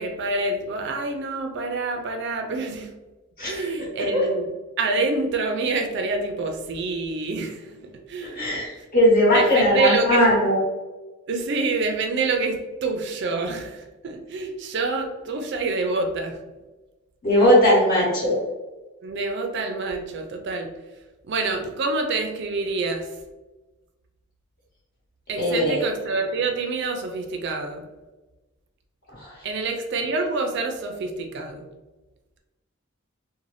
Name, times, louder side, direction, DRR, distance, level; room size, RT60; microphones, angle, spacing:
voice 1, 0.0-2.9 3.5-4.5 4.8-7.7 8.1-8.4 9.3-10.2 11.3-16.4 19.0-20.7 21.3-23.1 25.3-27.8 29.4-31.6, right 3 dB, 55° right, 4 dB, 0.4 m, -27 dB
voice 2, 8.3-10.6 17.2-18.4 25.4-25.8 29.2-29.3, equal, 45° left, -6 dB, 1.2 m, -19 dB
3.2 x 2.1 x 2.6 m, 1.1 s
head